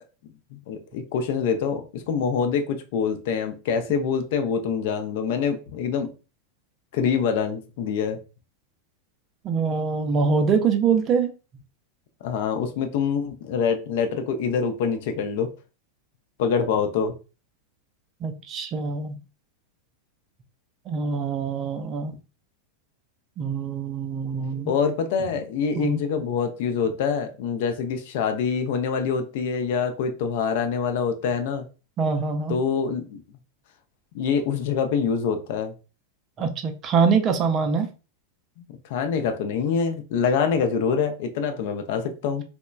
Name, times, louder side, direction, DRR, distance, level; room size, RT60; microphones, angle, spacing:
voice 1, 0.5-6.1 6.9-8.2 12.2-15.5 16.4-17.1 24.7-31.7 32.5-33.2 34.1-35.7 38.6-42.4, left 6 dB, 50° left, 0.4 m, -25 dB
voice 2, 9.4-11.3 18.2-19.1 20.9-22.1 23.4-24.7 25.8-26.0 32.0-32.6 36.4-37.9, right 5 dB, 30° right, 0.4 m, -24 dB
2.9 x 2.1 x 2.3 m
figure-of-eight pair, 90°, 0 cm